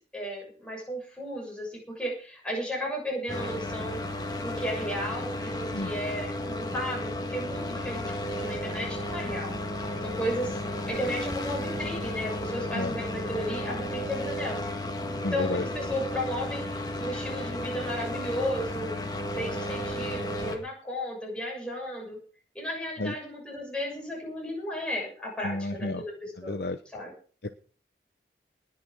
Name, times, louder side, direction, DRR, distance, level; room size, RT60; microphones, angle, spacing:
voice 1, 0.1-4.0 4.4-9.5 10.0-10.5 10.9-14.7 15.2-19.0 19.3-22.2 22.5-26.6 26.9-27.1, equal, 5° left, -1 dB, 6.6 m, -34 dB
sound 1, 3.3-20.6, left 1 dB, 20° left, 1.9 m, -33 dB
voice 2, 15.2-15.6 23.0-23.1 25.4-26.0 26.4-26.8 27.4-27.5, left 2 dB, 65° left, 9 dB, 0.8 m, -31 dB
19.5 x 6.9 x 6.2 m, 0.42 s
head